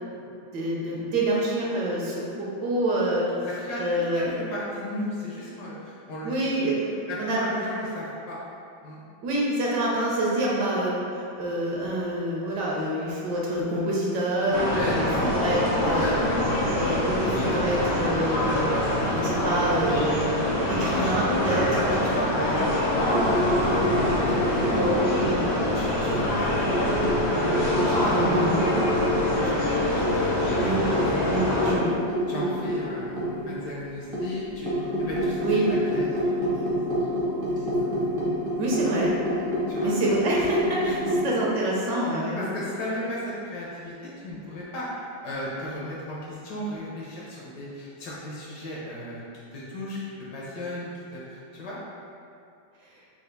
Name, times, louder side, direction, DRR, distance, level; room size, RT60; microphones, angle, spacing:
voice 1, 0.5-3.3 3.8-4.3 6.2-6.9 7.2-7.4 9.2-16.2 16.6-18.7 19.1-22.0 22.4-22.7 25.3-25.4 28.1-28.5 30.6-30.9 31.3-31.9 35.4-35.7 38.6-39.2 39.8-42.4, right 1 dB, 70° right, -4 dB, 1.2 m, -27 dB
voice 2, 3.4-6.3 6.6-6.7 7.1-8.4 8.8-9.0 14.5-15.3 16.0-16.7 21.3-21.6 21.9-25.2 25.7-27.2 27.9-31.3 31.6-31.9 32.3-35.4 35.6-36.3 39.7-39.9 42.1-49.2 49.5-51.8, left 1 dB, 65° left, -6 dB, 1.2 m, -36 dB
sound 1, 14.5-31.8, left 1 dB, 90° left, 1.7 m, -25 dB
sound 2, 23.0-25.7 26.1-29.2 29.5-29.6 30.0-33.5 34.1-41.3, equal, 35° right, 0.4 m, -28 dB
4.4 x 2.4 x 3.8 m, 2.5 s
omnidirectional pair, 2.1 m